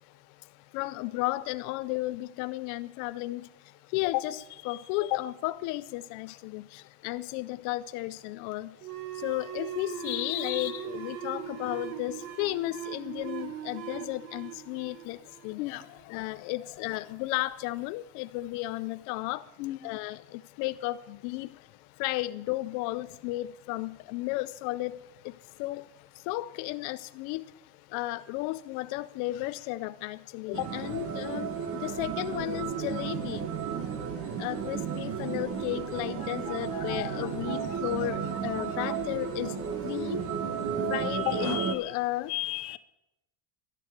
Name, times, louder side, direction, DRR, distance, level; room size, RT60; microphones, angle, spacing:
voice 1, 0.7-3.5 3.9-8.8 9.1-15.8 16.1-19.5 19.8-21.6 22.0-25.9 26.1-27.5 27.9-33.5 34.4-40.2 40.9-42.4, left 18 dB, 45° left, 12 dB, 0.4 m, -34 dB
sound 1, 8.8-16.0, right 9 dB, 75° right, 1.3 m, -39 dB
voice 2, 10.1-10.7 15.6-15.8 19.6-19.8 36.7-37.1 42.3-42.8, left 18 dB, 75° left, 13 dB, 1.0 m, -34 dB
sound 2, 30.5-41.8, right 7 dB, 30° right, 1.1 m, -33 dB
11.5 x 11.0 x 8.0 m, 0.93 s
cardioid pair, 165°, 44 cm